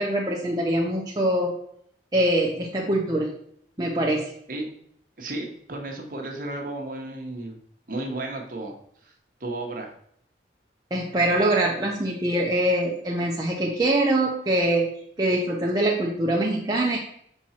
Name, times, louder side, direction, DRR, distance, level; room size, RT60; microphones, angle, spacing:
voice 1, 0.0-1.5 2.1-3.3 3.8-4.2 10.9-14.9 15.2-17.0, right 1 dB, 20° right, -3 dB, 0.7 m, -23 dB
voice 2, 5.2-7.5 7.9-8.7 9.0-9.1 9.4-9.9, right 2 dB, 50° right, 1 dB, 1.1 m, -33 dB
5.8 x 4.5 x 4.3 m, 0.67 s
head